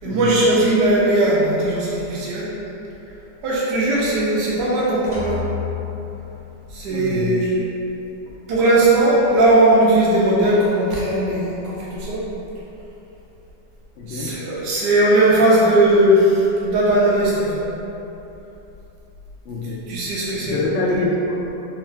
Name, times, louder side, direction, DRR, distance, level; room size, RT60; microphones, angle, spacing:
voice 1, 0.0-2.5 3.4-5.4 6.7-7.5 8.5-12.2 14.1-17.6 19.9-20.6 20.9-21.0, right 1 dB, 85° right, -7 dB, 1.3 m, -18 dB
sound 1, 5.1-7.0, left 8 dB, 35° left, 0.6 m, -31 dB
voice 2, 6.9-7.3 14.0-14.3 19.5-19.8 20.4-21.5, left 2 dB, 80° left, -4 dB, 0.6 m, -25 dB
3.6 x 3.3 x 3.2 m, 3.0 s
omnidirectional pair, 1.8 m